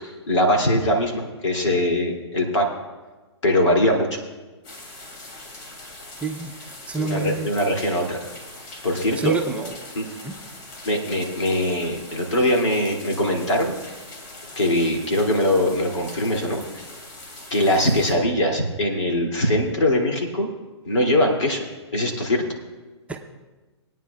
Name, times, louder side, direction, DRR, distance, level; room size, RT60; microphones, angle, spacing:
voice 1, 0.3-2.7 3.4-4.2 7.0-8.2 8.8-9.4 9.9-10.0 10.8-13.7 14.6-16.6 17.5-20.5 20.9-21.7 21.9-22.6, left 1 dB, 80° left, 1 dB, 2.6 m, -21 dB
sound 1, 4.6-18.1, left 2 dB, 45° left, 2.7 m, -41 dB
voice 2, 6.2-7.5 9.2-9.7 10.2-10.3 23.1-23.2, right 4 dB, 10° right, 2 dB, 0.6 m, -28 dB
22.0 x 9.1 x 2.4 m, 1.2 s
hypercardioid pair, 140°, 15 cm